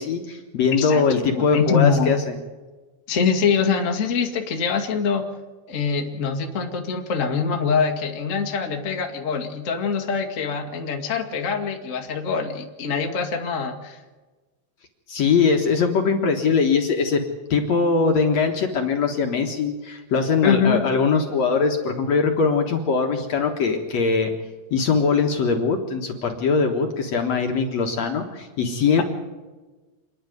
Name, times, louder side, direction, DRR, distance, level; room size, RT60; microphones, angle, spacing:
voice 1, 0.0-2.3 15.1-17.2 17.5-24.3 24.7-29.0, left 5 dB, 55° left, 2 dB, 2.1 m, -21 dB
voice 2, 1.3-2.1 3.1-5.2 5.7-14.0 20.4-20.8, left 5 dB, 35° left, 2 dB, 1.2 m, -24 dB
27.5 x 10.5 x 9.4 m, 1.3 s
omnidirectional pair, 4.6 m